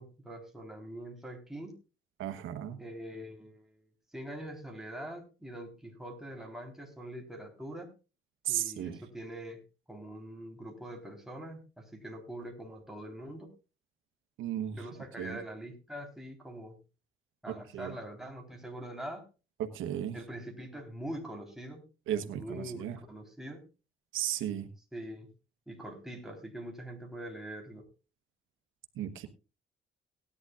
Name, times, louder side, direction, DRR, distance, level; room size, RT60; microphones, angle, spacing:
voice 1, 0.0-1.7 2.8-3.8 4.1-7.9 8.5-9.6 9.9-13.5 14.7-16.8 17.4-19.2 20.1-21.8 22.2-23.6 24.9-25.3 25.7-27.8, right 1 dB, ahead, 2 dB, 4.0 m, -43 dB
voice 2, 2.2-2.8 8.4-9.0 14.4-14.8 15.2-15.4 17.7-17.9 19.6-20.2 22.1-23.0 24.1-24.7 29.0-29.3, right 11 dB, 85° right, 9 dB, 1.2 m, -34 dB
18.0 x 11.0 x 2.5 m, 0.32 s
cardioid pair, 90°, 20 cm